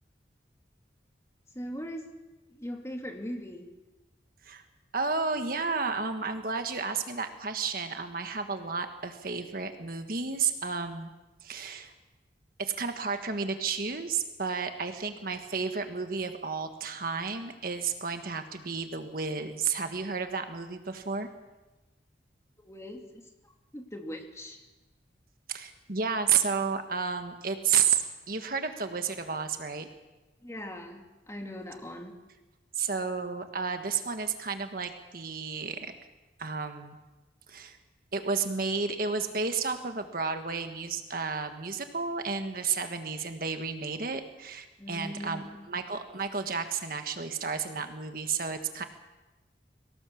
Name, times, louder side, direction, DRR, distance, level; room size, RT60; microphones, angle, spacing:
voice 1, 1.5-2.1 2.5-3.7 22.6-24.6 30.4-32.1 44.8-45.6, equal, 15° left, 2 dB, 2.5 m, -40 dB
voice 2, 4.9-11.1 11.4-11.9 12.6-21.3 25.5-29.9 32.7-35.9 36.4-37.0 37.5-37.8 38.1-48.8, right 5 dB, 50° right, 7 dB, 1.5 m, -32 dB
23.5 x 18.0 x 7.1 m, 1.1 s
head